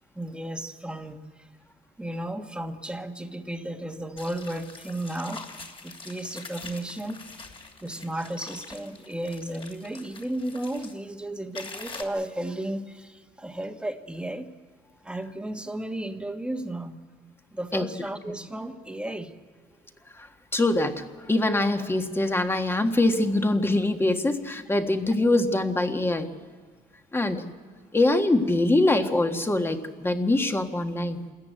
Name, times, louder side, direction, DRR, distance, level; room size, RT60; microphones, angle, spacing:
voice 1, 0.1-1.2 2.0-5.4 5.8-7.2 7.8-14.5 15.0-17.0 17.5-19.3, right 1 dB, 5° right, 6 dB, 1.5 m, -34 dB
sound 1, 4.2-10.9 11.5-12.0, left 3 dB, 30° left, 2.9 m, -44 dB
voice 2, 20.5-26.3 27.1-27.4 27.9-31.2, left 2 dB, 15° left, 6 dB, 1.6 m, -23 dB
27.0 x 14.0 x 9.2 m, 1.5 s
cardioid pair, 110°, 17 cm